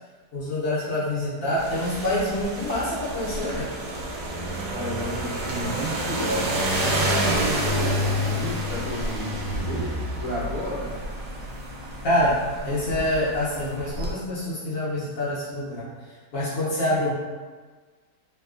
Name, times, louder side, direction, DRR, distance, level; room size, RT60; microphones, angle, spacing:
voice 1, 0.3-3.7 12.0-12.3 12.6-15.8 16.3-17.1, left 1 dB, 65° left, -9 dB, 1.1 m, -26 dB
sound 1, 1.6-14.1, equal, 90° right, 1.2 m, -29 dB
voice 2, 4.7-6.5 6.8-11.0, equal, 35° right, -12 dB, 1.4 m, -32 dB
3.2 x 2.3 x 2.4 m, 1.4 s
omnidirectional pair, 1.7 m